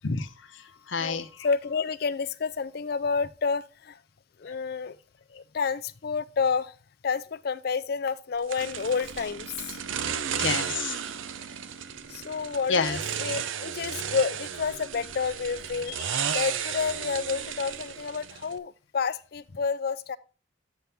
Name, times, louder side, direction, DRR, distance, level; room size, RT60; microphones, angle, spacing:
voice 1, 0.0-1.5 4.4-4.5 10.4-10.9 12.7-13.0, left 5 dB, 75° left, 0.8 m, -30 dB
voice 2, 1.0-4.0 4.4-5.0 5.3-6.7 7.0-9.8 12.1-20.2, left 5 dB, 50° left, 0.4 m, -30 dB
sound 1, 8.5-18.6, right 8 dB, 85° right, 0.6 m, -34 dB
8.1 x 5.8 x 3.4 m
head